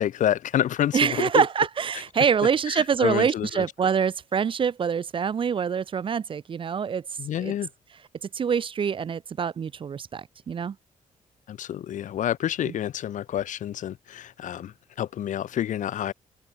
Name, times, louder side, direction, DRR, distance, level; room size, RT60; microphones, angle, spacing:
voice 1, 0.0-1.4 2.7-3.7 7.2-7.7 11.5-16.1, left 11 dB, 75° left, 2.5 m, -28 dB
voice 2, 0.9-7.1 7.4-7.5 8.2-10.8 12.6-12.7, right 7 dB, 40° right, 0.8 m, -25 dB
open air
cardioid pair, 125°, 13 cm